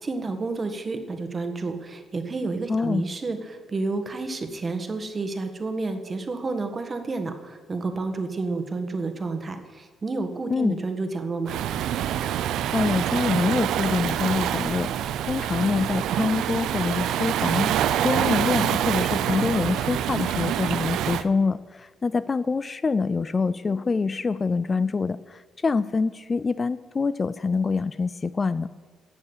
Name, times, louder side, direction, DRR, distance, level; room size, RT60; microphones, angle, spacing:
voice 1, 0.0-11.6, right 3 dB, 35° right, 7 dB, 1.5 m, -30 dB
voice 2, 2.7-3.0 10.5-10.7 12.7-28.7, left 4 dB, 30° left, 16 dB, 0.3 m, -25 dB
Waves surf, 11.5-21.2, right 10 dB, 85° right, 0.5 m, -26 dB
11.5 x 7.3 x 8.2 m, 1.4 s
cardioid pair, 90°, 0 cm